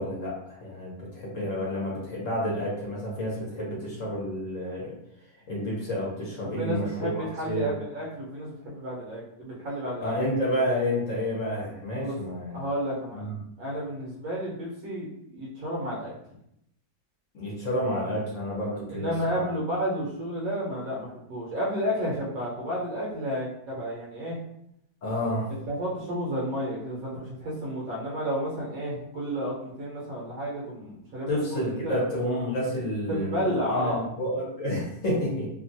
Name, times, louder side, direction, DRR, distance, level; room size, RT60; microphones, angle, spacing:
voice 1, 0.0-4.9 5.5-7.7 10.0-12.6 13.1-13.4 17.3-19.4 25.0-25.5 31.3-35.5, equal, 60° left, -4 dB, 1.0 m, -30 dB
voice 2, 6.4-10.2 12.0-12.2 12.5-13.3 13.6-16.1 18.9-24.4 25.7-32.0 33.1-34.0, equal, 65° right, -4 dB, 1.1 m, -31 dB
3.0 x 2.3 x 2.6 m, 0.76 s
omnidirectional pair, 1.8 m